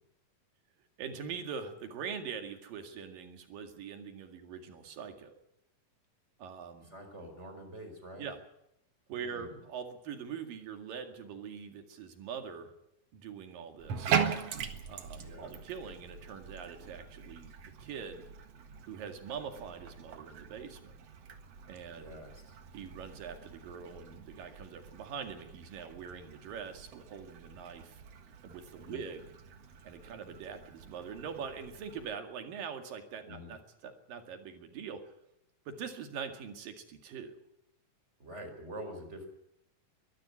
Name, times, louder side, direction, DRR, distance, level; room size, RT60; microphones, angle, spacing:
voice 1, 1.0-5.3 6.4-6.9 8.2-8.4 9.1-12.7 13.1-14.2 14.9-18.2 18.8-20.9 21.7-22.1 22.7-28.0 28.4-29.3 29.8-35.1 35.7-37.4, right 6 dB, 75° right, 6 dB, 3.8 m, -43 dB
voice 2, 6.8-8.3 9.2-9.6 15.2-15.5 21.9-22.5 28.8-29.1 33.3-33.5 38.2-39.3, equal, 20° right, 5 dB, 4.6 m, -46 dB
Bathtub (filling or washing), 13.8-32.1, right 7 dB, 55° right, 2.3 m, -41 dB
23.0 x 13.0 x 9.8 m, 0.82 s
omnidirectional pair, 4.1 m